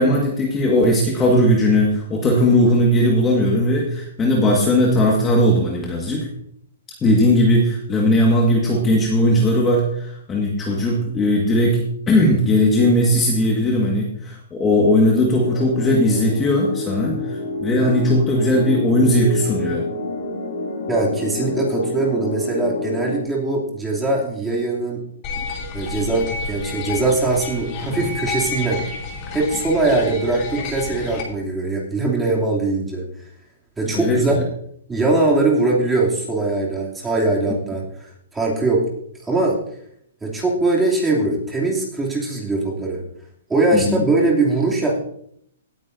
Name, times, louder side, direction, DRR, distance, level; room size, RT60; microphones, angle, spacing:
voice 1, 0.0-6.3 7.0-19.8 33.9-34.4 43.7-44.0, left 1 dB, 15° left, -2 dB, 1.7 m, -18 dB
sound 1, 15.4-23.2, left 2 dB, 55° left, 2.7 m, -28 dB
voice 2, 20.9-25.0 25.7-28.8 29.3-33.0 33.8-34.4 34.9-38.9 39.2-39.6 40.2-43.0 43.5-45.0, right 2 dB, 10° right, -3 dB, 2.8 m, -21 dB
sound 2, 25.2-31.2, left 4 dB, 35° left, 3.0 m, -30 dB
17.5 x 9.2 x 2.7 m, 0.69 s
hypercardioid pair, 145°, 0 cm